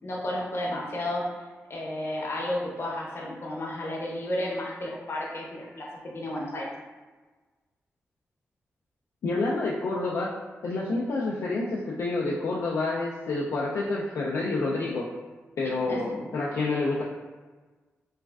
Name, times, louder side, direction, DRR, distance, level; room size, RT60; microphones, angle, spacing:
voice 1, 0.0-1.2 1.7-5.9 6.1-6.7 15.9-16.2, left 1 dB, 55° left, -3 dB, 0.8 m, -32 dB
voice 2, 9.2-10.3 10.6-15.1 15.6-17.0, left 3 dB, 75° left, -5 dB, 0.3 m, -28 dB
3.1 x 2.3 x 2.3 m, 1.3 s
cardioid pair, 45°, 5 cm